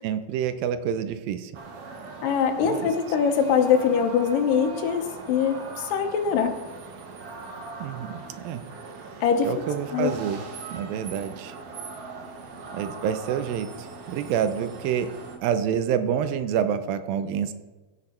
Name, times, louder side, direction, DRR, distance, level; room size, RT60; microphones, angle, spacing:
voice 1, 0.0-1.5 2.6-2.9 7.8-8.6 9.4-10.4 10.7-11.6 12.7-15.1 15.4-17.5, right 8 dB, 80° right, 10 dB, 2.4 m, -27 dB
sound 1, 1.5-15.4, right 4 dB, 65° right, 1.6 m, -40 dB
voice 2, 2.2-6.6 9.2-9.5 9.9-10.1, left 7 dB, 75° left, 6 dB, 2.5 m, -23 dB
16.5 x 6.3 x 4.3 m, 1.2 s
omnidirectional pair, 4.2 m